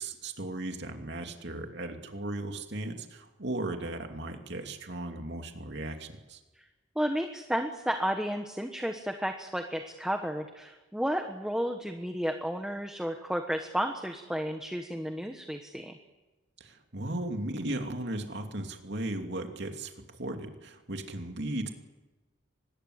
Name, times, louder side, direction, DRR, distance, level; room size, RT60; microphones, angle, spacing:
voice 1, 0.0-6.4 16.6-21.7, right 1 dB, 55° right, 4 dB, 2.9 m, -36 dB
voice 2, 6.9-16.0, equal, 5° right, 4 dB, 1.2 m, -32 dB
25.0 x 20.5 x 8.1 m, 1.2 s
head